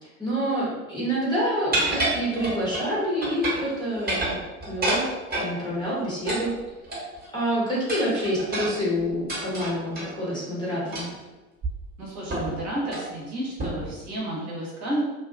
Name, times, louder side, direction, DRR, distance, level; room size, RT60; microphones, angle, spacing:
voice 1, 0.0-4.4 4.7-5.1 5.4-6.5 7.3-11.1, equal, 10° left, -8 dB, 1.0 m, -27 dB
sound 1, 1.7-2.9 3.2-3.7 4.0-5.5 6.3-7.3 7.9-10.1 10.9-11.2 11.6-11.7 12.3-12.6 12.8-13.1 13.6-13.9, right 1 dB, 20° right, 1.2 m, -28 dB
voice 2, 12.0-15.0, right 1 dB, 40° right, -5 dB, 1.1 m, -31 dB
2.7 x 2.4 x 2.4 m, 1.2 s
figure-of-eight pair, 70°, 42 cm